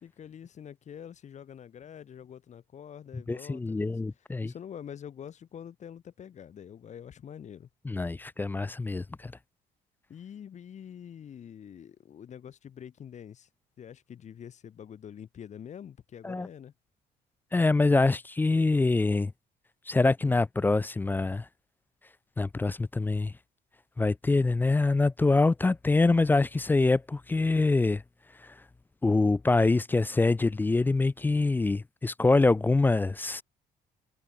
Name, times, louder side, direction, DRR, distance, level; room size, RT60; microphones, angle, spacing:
voice 1, 0.0-4.0 4.4-7.7 10.1-13.5 13.8-16.7, left 8 dB, 45° left, 2.5 m, -45 dB
voice 2, 3.3-4.5 7.9-9.3 16.2-16.5 17.5-19.3 19.9-21.5 22.4-23.3 24.0-28.0 28.4-28.5 29.0-33.4, left 3 dB, 10° left, 0.3 m, -25 dB
cardioid pair, 120°, 16 cm